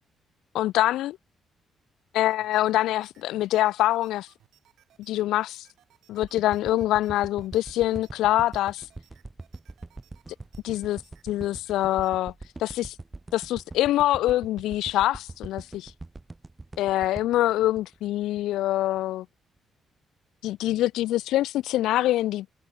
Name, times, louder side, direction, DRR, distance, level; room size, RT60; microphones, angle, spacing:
voice 1, 0.5-1.2 2.1-4.3 5.1-5.7 6.1-8.9 10.6-12.3 12.6-12.9 13.3-15.9 16.8-19.3 20.4-22.5, left 14 dB, 85° left, 0.4 m, -25 dB
sound 1, 2.3-12.1, right 12 dB, 75° right, 4.8 m, -63 dB
sound 2, 6.2-18.5 19.0-19.1, right 2 dB, 20° right, 0.5 m, -42 dB
cardioid pair, 90°, 0 cm